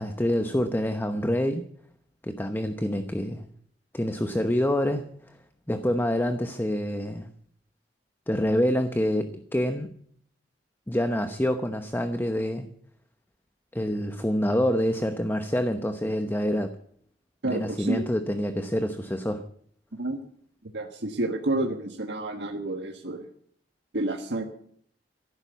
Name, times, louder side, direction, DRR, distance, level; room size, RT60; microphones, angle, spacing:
voice 1, 0.0-1.6 2.2-3.5 3.9-5.1 5.7-7.3 8.3-9.9 10.9-12.7 13.7-16.7 17.4-19.4, equal, 10° left, 8 dB, 0.9 m, -26 dB
voice 2, 17.4-18.0 19.9-20.2 20.7-23.3 23.9-24.4, right 2 dB, 85° right, 3 dB, 1.4 m, -29 dB
14.5 x 12.0 x 8.1 m, 0.63 s
head